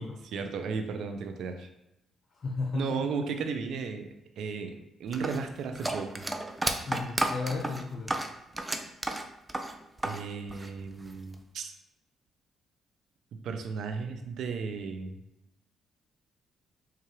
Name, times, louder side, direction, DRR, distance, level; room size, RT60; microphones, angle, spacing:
voice 1, 0.3-1.7 2.7-4.1 4.4-4.7 5.0-6.3 10.0-11.7 13.4-15.1, right 5 dB, 75° right, 6 dB, 0.4 m, -34 dB
voice 2, 2.3-3.1 6.9-8.2, left 3 dB, 60° left, 0 dB, 0.4 m, -34 dB
sound 1, 5.1-10.2 10.5-11.3, right 2 dB, 20° right, 0.4 m, -32 dB
4.4 x 2.4 x 3.1 m, 0.88 s
supercardioid pair, 60°, 0 cm